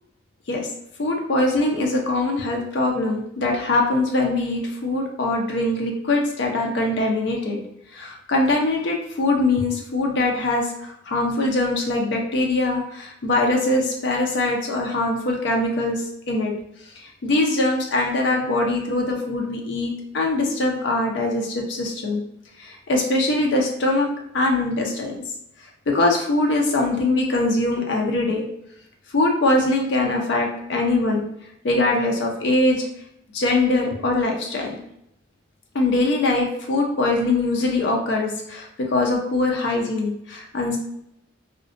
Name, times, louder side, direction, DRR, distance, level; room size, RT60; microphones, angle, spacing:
voice 1, 1.0-7.6 7.9-16.5 17.2-22.2 22.6-25.2 25.9-28.5 29.1-31.3 31.6-32.9 33.3-34.8 35.7-40.8, left 2 dB, 65° left, 1 dB, 0.4 m, -22 dB
2.5 x 2.1 x 2.4 m, 0.76 s
head